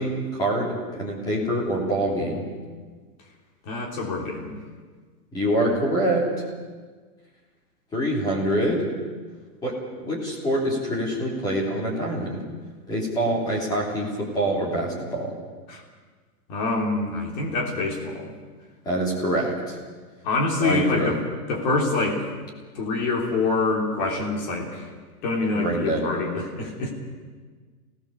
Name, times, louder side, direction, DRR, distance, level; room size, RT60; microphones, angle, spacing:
voice 1, 0.0-2.4 5.3-6.3 7.9-8.8 9.6-9.7 10.0-12.4 12.9-15.3 18.8-19.8 20.6-21.2 25.5-26.1, right 1 dB, 10° left, -3 dB, 3.1 m, -25 dB
voice 2, 3.6-4.5 15.7-15.8 16.5-18.3 20.2-21.2 21.5-22.3 22.7-24.9 25.2-26.9, left 3 dB, 30° left, 0 dB, 3.3 m, -25 dB
24.5 x 18.0 x 6.9 m, 1.5 s
hypercardioid pair, 180°, 47 cm